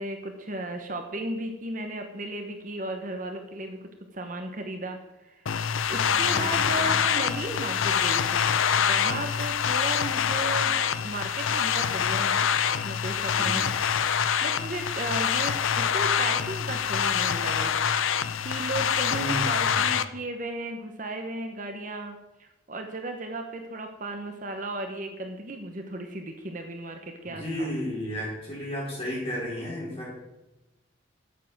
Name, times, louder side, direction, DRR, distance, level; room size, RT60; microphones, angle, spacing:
voice 1, 0.0-3.8 4.1-5.0 5.2-5.4 5.9-8.5 8.8-12.5 12.8-13.7 14.1-17.8 18.4-27.7, right 2 dB, 40° right, 5 dB, 1.1 m, -35 dB
sound 1, 5.5-20.0, left 7 dB, 80° left, 0.6 m, -25 dB
voice 2, 6.0-7.0 13.3-13.7 19.1-19.8 27.3-30.1, equal, 30° left, -6 dB, 5.2 m, -34 dB
9.2 x 7.5 x 7.7 m, 1.0 s
head